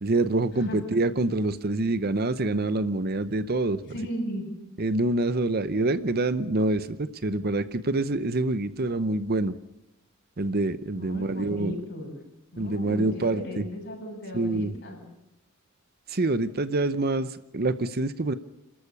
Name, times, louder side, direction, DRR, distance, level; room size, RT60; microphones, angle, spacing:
voice 1, 0.0-3.9 4.8-9.6 10.4-11.7 12.6-13.6 14.3-14.7 16.1-18.3, right 2 dB, 45° right, 13 dB, 0.8 m, -26 dB
voice 2, 3.9-4.5 10.9-12.1 12.5-15.0, equal, 55° left, 1 dB, 7.3 m, -36 dB
28.0 x 13.5 x 7.1 m, 0.90 s
head